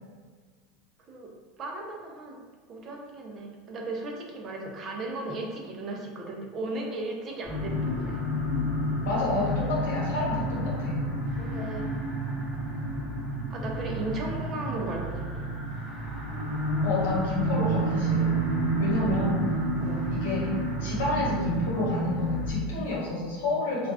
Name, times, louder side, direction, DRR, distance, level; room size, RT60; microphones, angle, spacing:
voice 1, 1.6-2.4 2.7-8.2 11.4-12.0 12.7-13.0 13.5-15.5 18.9-19.1 19.8-20.0, right 2 dB, 25° right, 0 dB, 0.4 m, -36 dB
sound 1, 7.4-22.5, right 1 dB, 5° left, 1.0 m, -29 dB
voice 2, 9.0-11.0 16.8-18.3 18.8-19.4 20.1-20.5 20.8-23.9, left 2 dB, 85° left, -4 dB, 1.0 m, -29 dB
2.3 x 2.2 x 3.4 m, 1.5 s
supercardioid pair, 165°, 0 cm